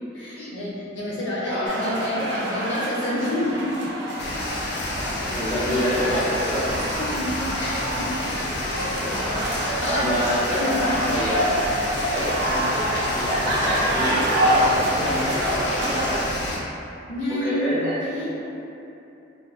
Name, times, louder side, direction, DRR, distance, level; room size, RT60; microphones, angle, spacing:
voice 1, 0.1-3.9 7.0-8.7 9.0-10.2 10.5-11.1 11.4-11.6 17.1-17.7 18.0-18.3, left 1 dB, 75° left, -8 dB, 0.8 m, -29 dB
sound 1, 1.7-16.2, right 1 dB, 60° right, 0.5 m, -27 dB
sound 2, 4.2-16.6, left 1 dB, 55° left, 0.4 m, -30 dB
voice 2, 5.3-6.7 9.9-11.5 12.1-16.2 17.4-18.0, equal, 10° left, -14 dB, 1.0 m, -26 dB
3.7 x 2.6 x 2.3 m, 2.8 s
head